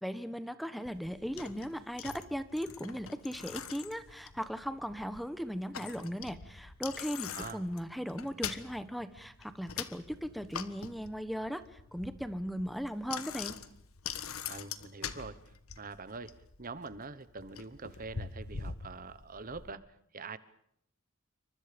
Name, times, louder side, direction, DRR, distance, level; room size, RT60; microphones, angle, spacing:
voice 1, 0.0-13.5, equal, ahead, 12 dB, 1.1 m, -38 dB
Bicycle, 0.8-19.7, left 7 dB, 85° left, 1.5 m, -44 dB
voice 2, 14.4-15.4 15.8-19.9 20.1-20.4, right 4 dB, 40° right, 15 dB, 1.1 m, -44 dB
28.0 x 25.0 x 5.2 m, 0.71 s
head